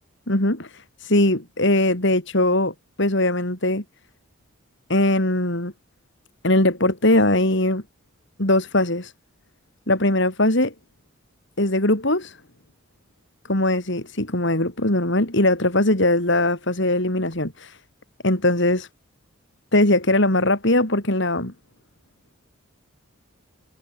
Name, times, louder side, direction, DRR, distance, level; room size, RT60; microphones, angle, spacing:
voice 1, 0.3-0.7 1.0-3.8 4.9-5.7 6.4-7.8 8.4-9.1 9.9-10.7 11.6-12.3 13.5-17.7 18.2-18.9 19.7-21.5, left 1 dB, 55° left, 4.1 m, -20 dB
head